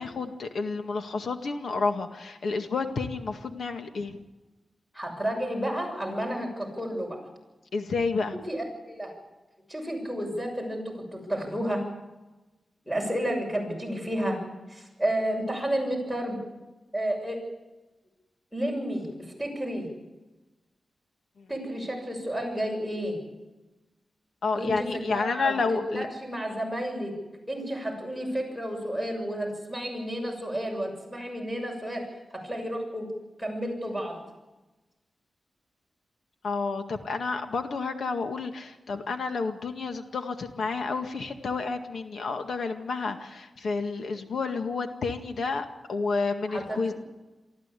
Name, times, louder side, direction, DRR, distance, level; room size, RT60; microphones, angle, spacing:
voice 1, 0.0-4.2 7.7-8.4 21.4-21.5 24.4-26.1 36.4-46.9, left 4 dB, 75° left, 6 dB, 1.9 m, -30 dB
voice 2, 4.9-7.2 8.3-9.1 9.7-11.9 12.8-14.4 14.7-16.4 16.9-17.5 18.5-19.9 21.5-23.2 24.5-27.2 27.5-33.1 33.4-34.2 46.5-46.9, equal, ahead, 1 dB, 6.8 m, -31 dB
24.5 x 14.0 x 8.4 m, 1.1 s
wide cardioid pair, 115°, 0 cm